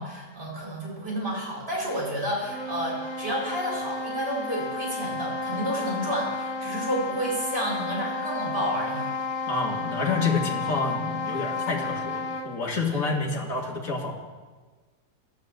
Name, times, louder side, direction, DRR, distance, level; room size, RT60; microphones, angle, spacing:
voice 1, 0.0-9.1 12.9-13.2, equal, 35° right, -4 dB, 4.8 m, -30 dB
sound 1, 2.3-12.6, left 3 dB, 80° left, 2.2 m, -32 dB
voice 2, 9.5-14.2, left 4 dB, 55° left, -1 dB, 2.3 m, -28 dB
12.0 x 8.8 x 7.9 m, 1.4 s
omnidirectional pair, 1.8 m